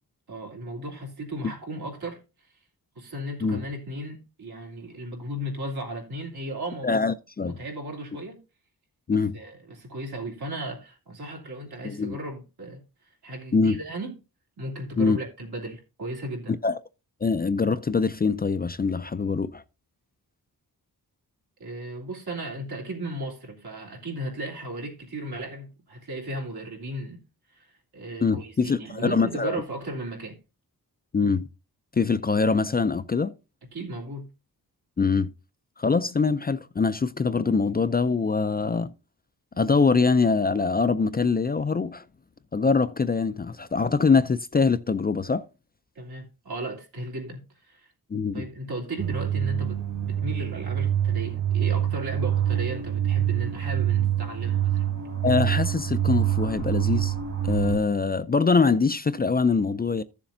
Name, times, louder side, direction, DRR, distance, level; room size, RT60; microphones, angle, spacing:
voice 1, 0.3-2.6 2.9-6.9 7.4-8.4 9.1-14.2 14.6-16.6 21.6-27.2 27.5-30.4 33.7-34.3 45.9-47.9 48.3-54.8, right 1 dB, 80° right, 3.0 m, -36 dB
voice 2, 6.8-7.6 9.1-9.4 11.8-12.2 13.5-13.8 15.0-15.2 16.6-16.8 17.2-19.6 28.2-29.6 31.1-31.5 32.0-33.3 35.0-35.3 35.8-38.9 39.6-42.0 42.5-45.4 48.1-48.5 55.2-57.1 57.4-60.0, left 4 dB, 25° left, 0.4 m, -23 dB
sound 1, 49.0-57.8, right 11 dB, 50° right, 2.2 m, -26 dB
14.5 x 7.2 x 2.6 m
wide cardioid pair, 115°, 38 cm